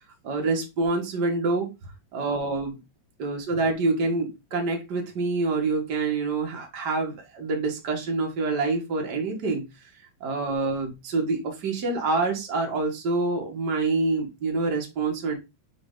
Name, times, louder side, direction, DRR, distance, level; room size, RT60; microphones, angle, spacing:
voice 1, 0.2-1.7 2.1-2.7 3.2-9.6 10.2-15.4, right 3 dB, 85° right, 2 dB, 0.9 m, -26 dB
9.3 x 3.4 x 3.8 m, 0.24 s
omnidirectional pair, 4.8 m